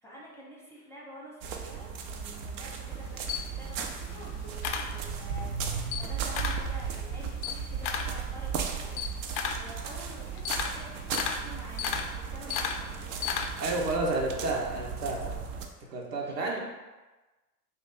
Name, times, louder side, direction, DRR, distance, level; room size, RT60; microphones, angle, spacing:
voice 1, 0.0-13.1 16.2-16.6, equal, 5° left, -5 dB, 0.8 m, -48 dB
sound 1, 1.4-15.7, right 6 dB, 50° right, 0.5 m, -36 dB
Camera, 2.9-5.5 5.8-6.7 7.1-13.8, left 7 dB, 50° left, 0.5 m, -34 dB
voice 2, 13.6-15.4 15.9-16.6, right 2 dB, 85° right, -2 dB, 0.9 m, -30 dB
2.8 x 2.6 x 3.6 m, 1.2 s
hypercardioid pair, 85°, 47 cm